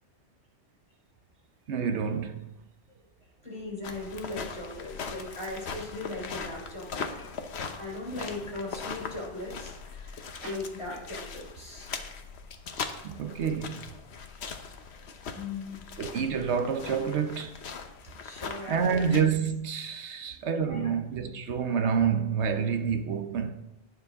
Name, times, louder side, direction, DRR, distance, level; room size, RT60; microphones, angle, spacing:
voice 1, 1.7-2.5 10.4-10.6 13.0-13.9 16.0-17.5 18.7-23.6, right 6 dB, 85° right, 1.1 m, -28 dB
voice 2, 3.4-7.1 7.8-11.9 15.3-15.8 16.9-17.1 17.9-18.0 18.2-19.1 20.1-20.2 20.7-20.9, left 2 dB, 25° left, 4.0 m, -38 dB
sound 1, 3.8-19.2, left 5 dB, 70° left, 1.2 m, -40 dB
18.5 x 7.2 x 3.6 m
omnidirectional pair, 1.1 m